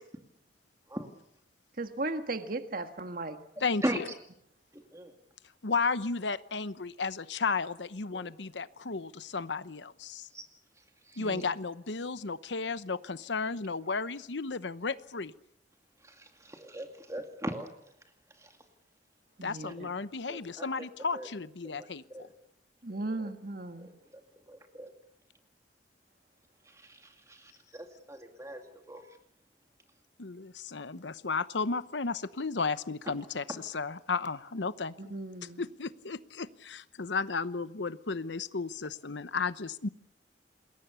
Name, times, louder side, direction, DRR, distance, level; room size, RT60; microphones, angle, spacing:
voice 1, 1.8-3.4 11.2-11.5 19.4-19.9 22.8-23.9 35.0-35.6, right 2 dB, 50° right, 8 dB, 1.6 m, -36 dB
voice 2, 3.6-4.0 5.6-10.3 11.2-15.3 19.4-22.3 30.2-34.9 35.6-39.9, left 4 dB, 80° left, 15 dB, 0.9 m, -34 dB
voice 3, 4.7-5.1 8.1-8.3 10.3-10.5 11.1-11.3 16.0-17.9 18.4-18.6 19.6-19.7 20.3-20.7 21.1-21.3 21.6-22.3 22.9-23.0 23.8-24.2 24.5-24.9 26.7-28.6 28.9-29.0 33.1-33.2, right 1 dB, 15° right, 5 dB, 2.2 m, -39 dB
27.5 x 21.5 x 7.0 m, 0.74 s
head